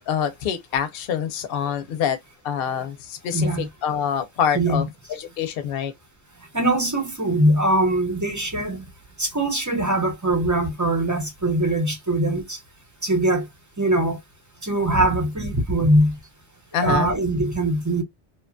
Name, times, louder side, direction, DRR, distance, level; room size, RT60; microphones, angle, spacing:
voice 1, 0.0-2.2 2.4-4.8 5.1-5.9 16.7-17.1, left 8 dB, 70° left, 0.8 m, -26 dB
voice 2, 3.3-3.7 4.5-4.8 6.5-8.9 9.2-12.6 13.0-13.5 13.8-14.2 14.6-16.1 16.8-18.0, right 1 dB, 20° right, 0.5 m, -21 dB
2.8 x 2.2 x 2.4 m
omnidirectional pair, 1.1 m